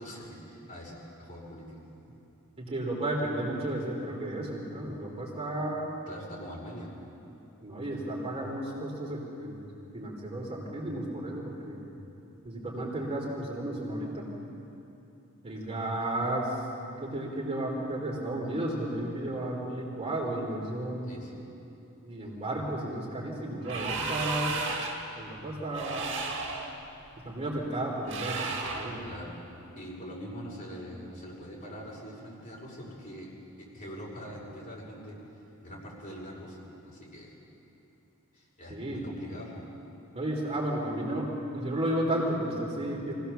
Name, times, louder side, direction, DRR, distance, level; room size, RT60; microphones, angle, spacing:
voice 1, 0.0-1.8 6.1-6.9 21.0-21.4 29.0-29.4 29.8-33.3 33.6-35.2 35.6-37.3 38.3-39.7, equal, 40° left, -4 dB, 5.6 m, -43 dB
voice 2, 2.6-5.9 7.6-9.6 9.9-11.8 12.4-14.2 15.4-16.6 17.0-21.1 22.0-24.6 25.1-26.2 27.2-29.0 38.7-39.0 40.1-43.1, right 1 dB, 25° right, -3 dB, 3.5 m, -33 dB
sound 1, 23.6-25.1 25.7-26.7 28.1-29.0, right 3 dB, 55° right, 2.3 m, -33 dB
25.0 x 17.0 x 7.0 m, 2.8 s
head